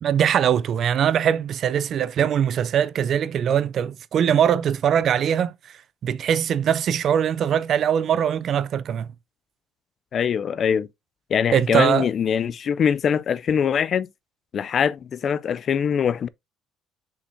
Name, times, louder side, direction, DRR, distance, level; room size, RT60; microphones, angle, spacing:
voice 1, 0.0-5.5 6.0-9.1 11.5-12.1, right 9 dB, 50° right, 0.5 m, -21 dB
voice 2, 10.1-10.9 11.3-14.1 14.5-16.3, left 7 dB, 40° left, 0.4 m, -23 dB
6.5 x 5.4 x 2.6 m
cardioid pair, 140°, 0 cm